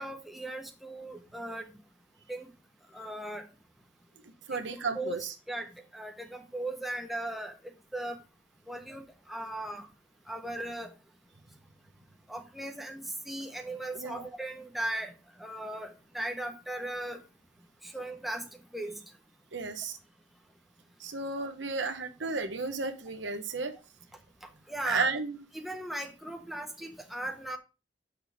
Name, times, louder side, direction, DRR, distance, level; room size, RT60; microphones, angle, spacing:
voice 1, 0.0-1.7 2.3-2.5 2.9-3.5 4.5-4.6 4.9-5.2 5.5-8.2 8.7-9.9 10.3-10.9 12.3-15.1 15.4-17.2 17.8-18.5 18.7-19.0 24.7-25.0 25.5-27.6, right 1 dB, ahead, 3 dB, 1.1 m, -37 dB
voice 2, 4.5-5.3 13.9-14.3 19.5-20.0 21.0-23.7 24.8-25.4, right 4 dB, 85° right, 6 dB, 1.1 m, -33 dB
8.1 x 6.4 x 3.5 m, 0.31 s
head